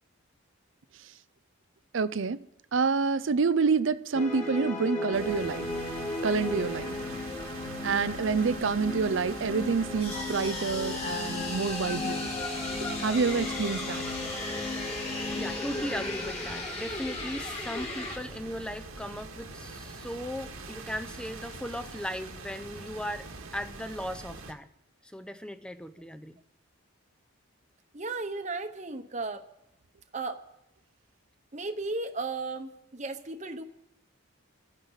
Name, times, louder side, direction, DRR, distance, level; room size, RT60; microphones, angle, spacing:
voice 1, 1.9-2.4 2.7-5.7 6.2-7.0 7.8-12.3 13.0-14.1, right 5 dB, 65° right, 0.5 m, -27 dB
sound 1, 4.1-18.2, left 2 dB, 30° left, 2.6 m, -34 dB
sound 2, 5.1-24.5, right 3 dB, 90° right, 1.9 m, -43 dB
voice 2, 15.3-23.3 23.5-24.7 25.0-26.4, equal, 5° left, 0.6 m, -37 dB
voice 3, 27.9-29.4 30.1-30.4 31.5-33.6, right 3 dB, 35° right, 1.0 m, -35 dB
26.5 x 10.5 x 4.0 m
head